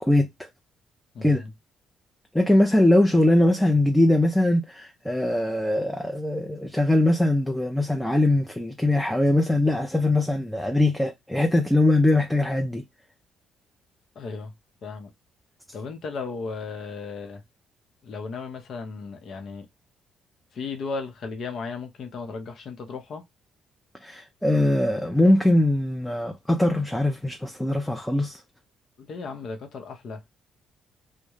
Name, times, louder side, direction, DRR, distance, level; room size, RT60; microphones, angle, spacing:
voice 1, 0.0-0.5 1.2-1.4 2.3-12.8 24.0-28.4, left 1 dB, 5° left, 0.5 m, -21 dB
voice 2, 1.1-1.5 14.2-14.5 14.8-15.1 15.7-17.4 18.0-19.7 20.5-23.2 29.0-30.2, left 4 dB, 60° left, 0.7 m, -35 dB
2.2 x 2.1 x 3.0 m
supercardioid pair, 55°, 0 cm